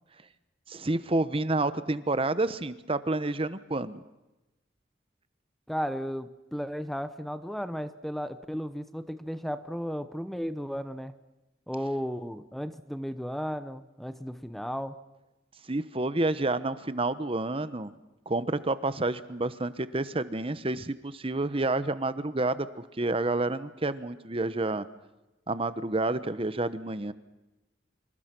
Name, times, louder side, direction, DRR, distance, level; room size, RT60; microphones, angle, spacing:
voice 1, 0.7-4.0 15.7-17.9 18.3-24.8 25.5-27.1, right 2 dB, 30° right, 13 dB, 1.0 m, -29 dB
voice 2, 5.7-11.1 11.7-15.0, equal, ahead, 11 dB, 0.9 m, -34 dB
27.0 x 26.0 x 6.1 m, 1.0 s
head